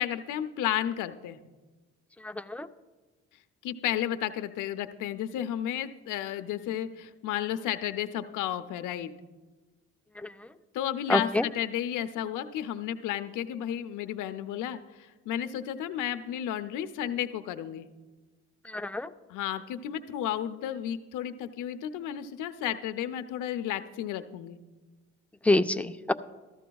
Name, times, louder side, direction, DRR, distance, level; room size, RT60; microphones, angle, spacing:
voice 1, 0.0-1.4 3.6-9.1 10.7-17.9 19.3-24.6, left 11 dB, 90° left, 9 dB, 0.6 m, -32 dB
voice 2, 2.2-2.7 10.2-10.3 11.1-11.5 18.7-19.1 25.4-26.1, left 2 dB, 5° left, 8 dB, 0.3 m, -26 dB
14.5 x 13.5 x 2.3 m, 1.3 s
cardioid pair, 90°, 30 cm